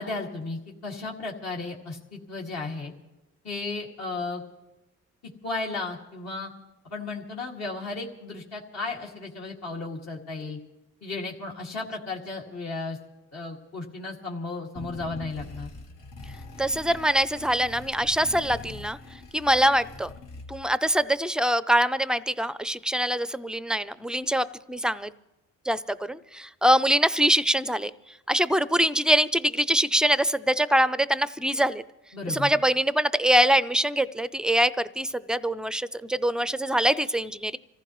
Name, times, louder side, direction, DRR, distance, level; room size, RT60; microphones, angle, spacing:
voice 1, 0.0-2.9 3.4-4.4 5.4-6.5 6.8-10.6 11.0-13.0 13.3-15.7 32.1-32.5, left 3 dB, 60° left, -2 dB, 2.2 m, -34 dB
sound 1, 14.8-20.8, left 3 dB, 85° left, 2.0 m, -43 dB
voice 2, 16.6-19.0 19.3-20.1 20.5-25.1 25.7-27.9 28.3-31.8 32.3-37.6, right 1 dB, 5° right, 15 dB, 0.4 m, -24 dB
26.5 x 15.0 x 3.1 m, 1.0 s
cardioid pair, 90°, 30 cm